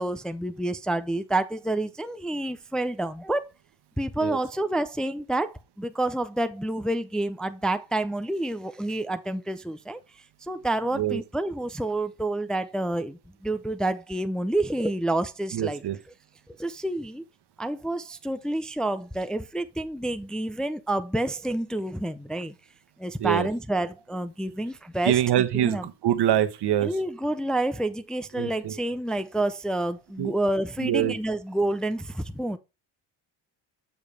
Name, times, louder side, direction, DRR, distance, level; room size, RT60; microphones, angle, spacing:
voice 1, 0.0-3.5 4.0-10.0 10.4-15.8 16.5-17.2 17.6-22.5 23.0-25.9 26.8-32.6, right 1 dB, ahead, 0.5 m, -29 dB
voice 2, 15.5-16.0 23.2-23.5 25.0-26.9 28.3-28.8 30.2-30.3 30.8-31.1, right 11 dB, 60° right, 1.3 m, -24 dB
7.2 x 6.8 x 3.3 m
cardioid pair, 85°, 45 cm